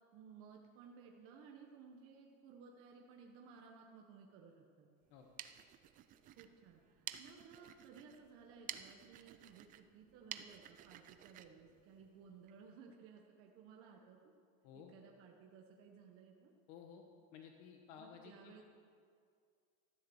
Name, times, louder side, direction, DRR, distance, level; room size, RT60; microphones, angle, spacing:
voice 1, 0.1-4.9 6.4-14.3 14.7-16.5 18.0-18.6, right 6 dB, 40° right, 0 dB, 1.3 m, -58 dB
sound 1, 5.1-12.6, right 11 dB, 25° right, 0.4 m, -53 dB
voice 2, 16.7-17.0 17.3-18.6, left 7 dB, 75° left, 3 dB, 1.4 m, -55 dB
14.0 x 11.0 x 7.1 m, 2.2 s
cardioid pair, 180°, 34 cm